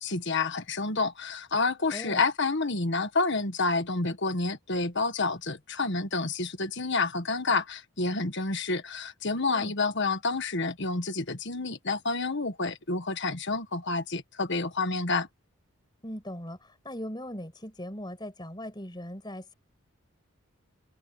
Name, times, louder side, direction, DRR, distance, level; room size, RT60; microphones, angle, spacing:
voice 1, 0.0-15.3, left 3 dB, 55° left, 1.6 m, -29 dB
voice 2, 1.9-2.2 9.5-9.7 16.0-19.5, equal, 20° left, 6.4 m, -39 dB
open air
head